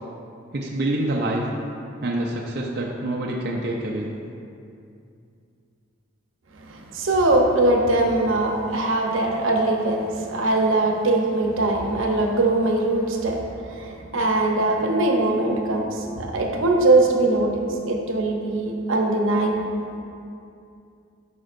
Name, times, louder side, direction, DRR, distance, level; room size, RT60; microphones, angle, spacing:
voice 1, 0.5-1.4 2.0-4.1, right 1 dB, 50° right, -2 dB, 0.5 m, -26 dB
voice 2, 6.5-19.6, right 2 dB, 80° right, 1 dB, 0.8 m, -21 dB
10.5 x 5.1 x 2.5 m, 2.5 s
head